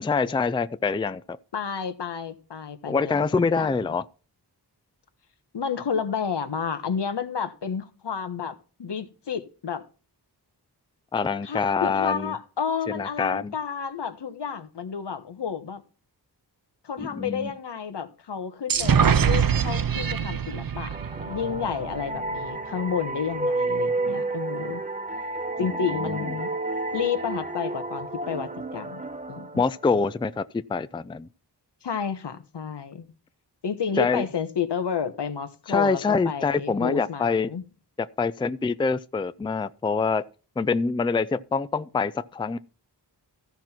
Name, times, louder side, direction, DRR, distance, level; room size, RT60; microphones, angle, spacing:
voice 1, 0.0-1.4 2.9-4.0 11.1-12.3 12.9-13.5 17.0-17.5 25.6-25.7 26.1-26.3 29.6-30.4 30.7-31.3 34.0-34.3 35.7-37.5 38.2-40.3 40.6-42.6, left 4 dB, 15° left, 0.4 m, -25 dB
voice 2, 1.5-3.7 5.5-9.8 11.4-15.8 16.8-20.9 21.2-24.8 25.6-26.5 26.9-29.0 29.3-29.6 31.8-33.1 33.6-37.6, left 7 dB, 80° left, 1.3 m, -31 dB
sound 1, 18.7-22.4, right 7 dB, 55° right, 0.8 m, -24 dB
sound 2, 20.9-30.3, right 2 dB, 20° right, 1.0 m, -31 dB
14.0 x 6.0 x 4.4 m
wide cardioid pair, 95°, 41 cm